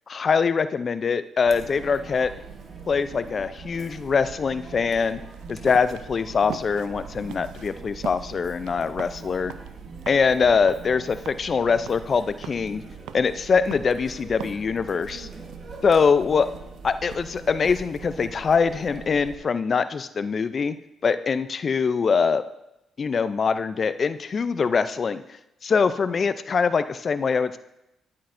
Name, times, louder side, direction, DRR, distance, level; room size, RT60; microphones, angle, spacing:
voice 1, 0.1-2.3 2.9-5.2 5.5-9.5 10.1-12.8 13.1-15.3 15.8-16.5 16.8-20.8 21.0-22.4 23.0-25.2 25.6-27.6, left 5 dB, 45° left, 12 dB, 0.4 m, -23 dB
Chatter, 1.5-19.4, right 5 dB, 50° right, 1.1 m, -42 dB
sound 1, 4.9-18.6, right 10 dB, 90° right, 0.4 m, -45 dB
11.5 x 8.5 x 2.6 m, 0.89 s
cardioid pair, 90°, 0 cm